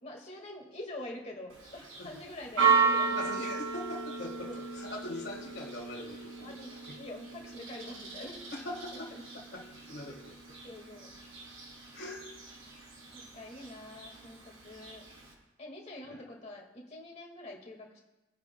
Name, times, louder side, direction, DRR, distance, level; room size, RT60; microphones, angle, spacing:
voice 1, 0.0-3.5 4.4-4.6 6.4-8.4 8.9-9.2 10.6-11.1 13.1-15.0 15.6-18.0, left 1 dB, 35° left, 0 dB, 1.9 m, -46 dB
Church bell, 1.5-15.3, right 5 dB, 85° right, 2.6 m, -35 dB
voice 2, 3.1-6.6 6.9-7.0 8.5-10.4 11.9-12.3 16.0-16.2, left 1 dB, 55° left, -2 dB, 1.8 m, -42 dB
22.0 x 9.4 x 2.3 m, 1.0 s
head